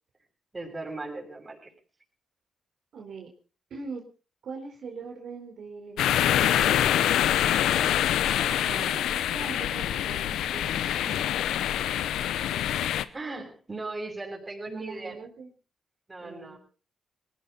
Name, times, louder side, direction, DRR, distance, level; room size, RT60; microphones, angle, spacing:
voice 1, 0.5-1.7 13.1-15.2 16.1-16.6, right 2 dB, 25° right, 1 dB, 7.1 m, -37 dB
voice 2, 2.9-3.3 3.7-4.0 4.4-7.7 8.5-11.3 11.8-12.0 14.7-15.5 16.2-16.6, right 5 dB, 70° right, 2 dB, 4.1 m, -42 dB
sound 1, 6.0-13.0, left 11 dB, 85° left, 0.8 m, -25 dB
20.5 x 16.0 x 4.1 m, 0.36 s
supercardioid pair, 55°, 0 cm